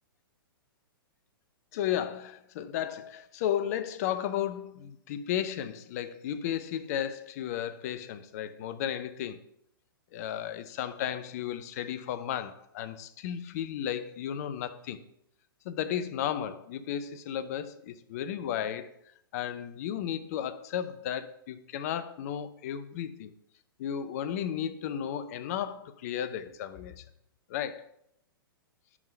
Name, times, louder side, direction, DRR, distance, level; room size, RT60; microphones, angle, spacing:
voice 1, 1.7-9.4 10.1-15.0 15.6-18.9 19.3-23.3 23.8-27.0 27.5-27.9, left 10 dB, 40° left, 0.6 m, -34 dB
11.0 x 3.7 x 5.5 m
figure-of-eight pair, 110°, 12 cm